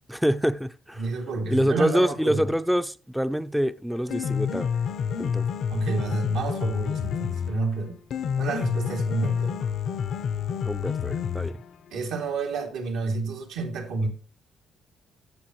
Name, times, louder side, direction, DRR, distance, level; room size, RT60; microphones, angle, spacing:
voice 1, 0.1-1.1 1.5-4.7 5.2-5.5 10.7-11.5, equal, ahead, 0.5 m, -26 dB
voice 2, 1.0-2.4 5.7-8.0 8.4-9.7 11.9-14.1, right 3 dB, 90° right, 2.7 m, -29 dB
Piano, 3.9-11.9, left 7 dB, 70° left, 0.7 m, -29 dB
14.5 x 6.9 x 3.1 m
cardioid pair, 90°, 0 cm